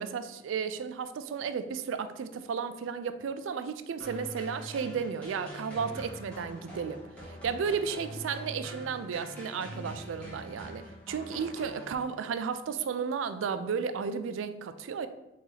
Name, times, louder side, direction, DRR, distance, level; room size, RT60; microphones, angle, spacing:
voice 1, 0.0-15.1, right 6 dB, 85° right, 11 dB, 0.4 m, -33 dB
sound 1, 4.0-12.4, equal, 5° left, 1.1 m, -44 dB
4.3 x 2.9 x 3.8 m, 0.94 s
head